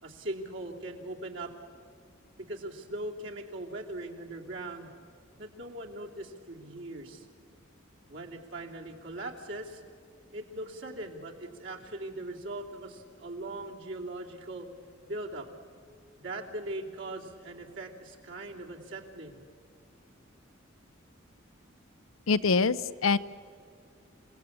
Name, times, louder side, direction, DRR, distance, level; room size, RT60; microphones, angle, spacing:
voice 1, 0.0-1.5 2.4-4.9 5.4-7.3 8.1-9.8 10.3-14.7 15.1-15.5 16.2-19.4, right 2 dB, 65° right, 0 dB, 2.8 m, -40 dB
voice 2, 22.3-23.2, left 4 dB, 85° left, 14 dB, 0.7 m, -24 dB
28.0 x 18.0 x 8.6 m, 2.3 s
head